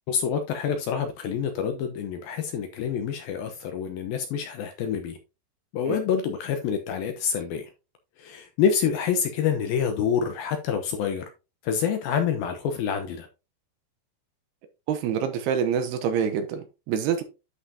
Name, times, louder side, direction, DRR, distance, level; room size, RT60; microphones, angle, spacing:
voice 1, 0.1-5.2 5.7-7.7 8.2-11.2 11.6-13.3, left 7 dB, 75° left, 2.3 m, -27 dB
voice 2, 14.9-17.2, right 7 dB, 75° right, 2.6 m, -26 dB
11.0 x 5.7 x 2.7 m
omnidirectional pair, 5.1 m